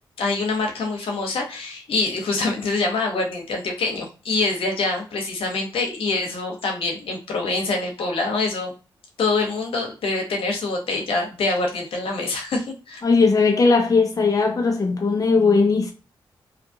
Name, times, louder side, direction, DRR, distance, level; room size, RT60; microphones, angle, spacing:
voice 1, 0.2-8.7 9.2-13.0, left 3 dB, 85° left, 0.8 m, -25 dB
voice 2, 13.0-15.9, left 4 dB, 40° left, 0.5 m, -18 dB
2.7 x 2.4 x 2.6 m
cardioid pair, 65°, 9 cm